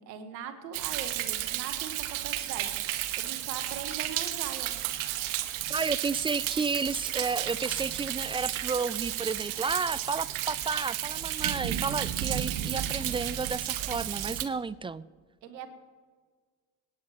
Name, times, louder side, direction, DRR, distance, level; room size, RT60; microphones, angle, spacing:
voice 1, 0.0-2.8 3.2-4.7 15.4-15.7, right 8 dB, 90° right, 9 dB, 1.1 m, -41 dB
Thunder, 0.7-14.5, right 13 dB, 70° right, 0.9 m, -33 dB
voice 2, 5.7-15.0, right 4 dB, 15° right, 19 dB, 0.3 m, -32 dB
25.0 x 9.3 x 3.1 m, 1.6 s
hypercardioid pair, 45°, 49 cm